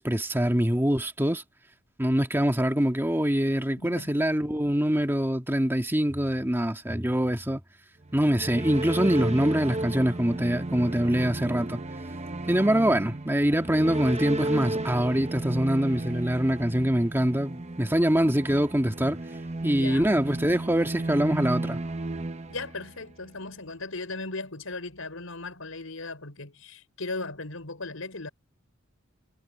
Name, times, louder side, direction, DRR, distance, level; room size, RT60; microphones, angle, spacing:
voice 1, 0.0-1.4 2.0-7.6 8.1-11.8 12.5-19.2 19.6-21.8, equal, 10° right, 1.7 m, -24 dB
voice 2, 3.8-4.2 19.7-20.1 22.5-28.3, left 3 dB, 80° left, 5.3 m, -37 dB
sound 1, 8.0-23.2, right 2 dB, 30° right, 0.9 m, -33 dB
head